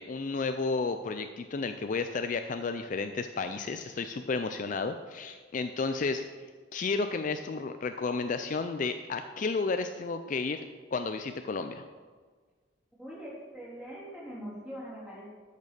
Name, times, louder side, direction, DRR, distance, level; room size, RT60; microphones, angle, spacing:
voice 1, 0.0-6.2 6.7-10.6 10.9-11.8, left 4 dB, 40° left, 8 dB, 0.4 m, -32 dB
voice 2, 13.0-15.3, equal, 5° right, -7 dB, 3.3 m, -42 dB
8.5 x 6.5 x 6.5 m, 1.5 s
head